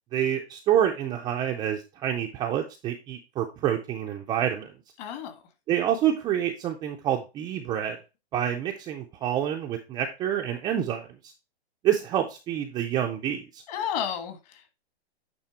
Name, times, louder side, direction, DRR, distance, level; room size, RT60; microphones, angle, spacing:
voice 1, 0.1-4.7 5.7-8.0 8.3-11.1 11.8-13.6, right 10 dB, 15° right, 0.4 m, -27 dB
voice 2, 5.0-5.4 13.7-14.7, left 8 dB, 40° left, 1.5 m, -32 dB
8.8 x 3.3 x 4.3 m
hypercardioid pair, 135°, 31 cm